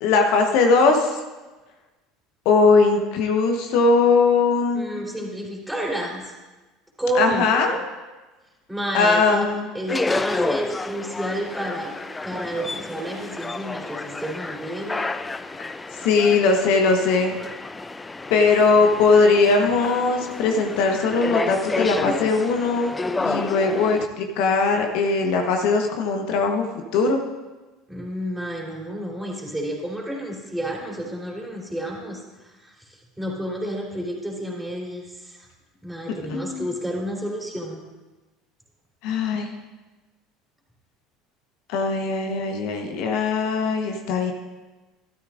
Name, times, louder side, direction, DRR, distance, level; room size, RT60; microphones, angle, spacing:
voice 1, 0.0-1.2 2.4-5.0 7.1-7.8 8.9-9.7 15.9-17.4 18.3-22.9 23.2-26.7 26.9-27.2 36.3-36.7 39.0-39.5 41.7-44.3, left 4 dB, 65° left, 4 dB, 1.1 m, -20 dB
voice 2, 4.7-6.3 7.0-7.5 8.7-9.5 9.7-11.9 12.2-15.1 27.9-32.7 33.2-35.4 35.8-37.8, right 1 dB, 5° right, -2 dB, 3.7 m, -30 dB
sound 1, 9.9-24.1, left 3 dB, 15° left, 0.5 m, -30 dB
13.0 x 12.5 x 2.6 m, 1.2 s
hypercardioid pair, 70°, 0 cm